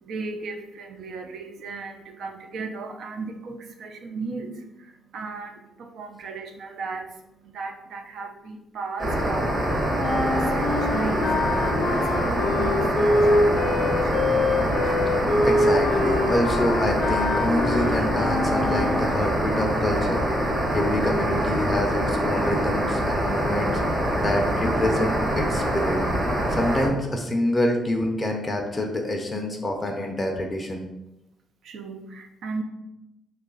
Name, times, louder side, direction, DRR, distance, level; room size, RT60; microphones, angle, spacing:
voice 1, 0.0-4.5 5.1-7.1 7.5-9.5 10.1-11.3 11.9-14.4 31.6-32.6, right 4 dB, 70° right, 4 dB, 0.5 m, -35 dB
sound 1, 9.0-26.9, right 1 dB, 35° right, 1.0 m, -25 dB
sound 2, 10.0-19.2, left 2 dB, 80° left, 0.5 m, -25 dB
voice 2, 15.4-20.2 20.7-23.8 24.2-26.0 26.5-30.9, left 1 dB, 15° left, 2 dB, 0.5 m, -26 dB
3.1 x 2.3 x 3.8 m, 0.90 s
cardioid pair, 90°, 0 cm